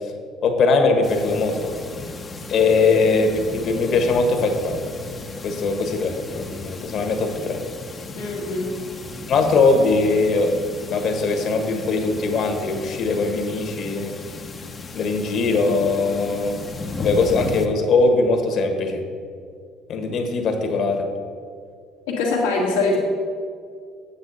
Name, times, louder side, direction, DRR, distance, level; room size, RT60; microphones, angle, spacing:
voice 1, 0.4-1.7 2.5-4.9 5.4-7.6 9.3-10.6 10.9-14.1 14.9-16.6 17.0-19.0 19.9-21.1, left 3 dB, 60° left, 5 dB, 1.4 m, -20 dB
sound 1, 1.0-17.7, left 3 dB, 30° left, 0.8 m, -35 dB
voice 2, 8.2-8.8 22.1-23.0, left 3 dB, 90° left, -4 dB, 1.6 m, -23 dB
8.2 x 7.7 x 4.1 m, 2.2 s
supercardioid pair, 80°, 0 cm